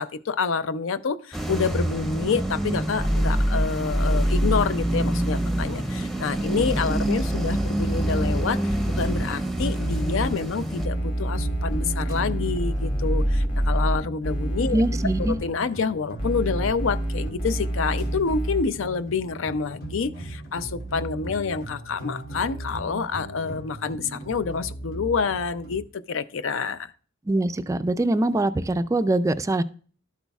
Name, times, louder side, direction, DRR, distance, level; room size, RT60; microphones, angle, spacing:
voice 1, 0.0-14.8 15.2-26.9, left 5 dB, 70° left, 14 dB, 0.5 m, -28 dB
sound 1, 1.3-10.9, right 1 dB, ahead, 0.7 m, -28 dB
sound 2, 3.0-5.7 6.6-9.2 9.6-10.3 10.8-14.0 14.2-15.3 16.2-18.6, right 1 dB, 25° left, 1.3 m, -26 dB
sound 3, 8.9-25.8, right 2 dB, 85° left, 2.8 m, -38 dB
voice 2, 14.7-15.4 27.3-29.6, right 2 dB, 15° right, 11 dB, 0.3 m, -23 dB
12.0 x 8.1 x 2.3 m, 0.42 s
head